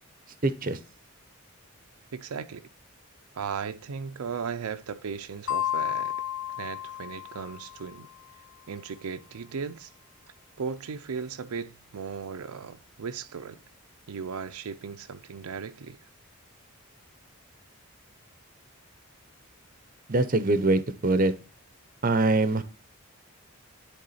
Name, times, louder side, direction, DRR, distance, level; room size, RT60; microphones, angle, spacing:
voice 1, 0.4-0.8 20.1-21.3 22.0-22.6, right 2 dB, 40° right, 0.6 m, -23 dB
voice 2, 2.1-2.7 3.3-6.1 6.6-8.1 8.7-9.9 10.6-13.6 14.1-16.0, right 6 dB, 80° right, 0.5 m, -36 dB
sound 1, 5.5-8.0, left 12 dB, 60° left, 0.5 m, -32 dB
10.5 x 3.6 x 4.0 m
head